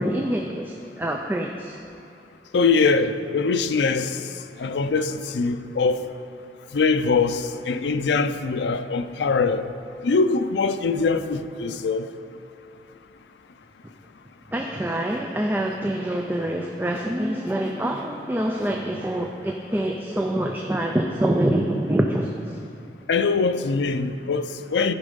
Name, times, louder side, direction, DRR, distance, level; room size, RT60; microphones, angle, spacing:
voice 1, 0.0-1.8 14.5-22.6, right 1 dB, 10° right, 0.4 m, -25 dB
voice 2, 2.5-4.2 4.6-6.0 6.7-9.7 10.0-12.1 23.1-24.9, left 4 dB, 80° left, 0.5 m, -22 dB
14.0 x 5.2 x 5.1 m
head